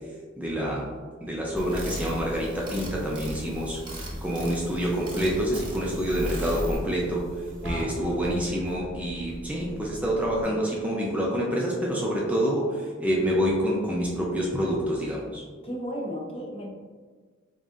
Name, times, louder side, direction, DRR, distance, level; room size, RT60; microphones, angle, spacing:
voice 1, 0.4-0.9 1.2-3.8 4.2-7.3 7.6-15.4, equal, 5° right, -3 dB, 0.4 m, -27 dB
sound 1, 1.5-6.8, equal, 25° right, 0.9 m, -36 dB
Bus / Engine, 5.3-10.4, equal, 85° right, 0.8 m, -39 dB
voice 2, 7.6-7.9 15.6-16.7, equal, 30° left, -1 dB, 0.7 m, -34 dB
3.9 x 3.6 x 2.4 m, 1.5 s
head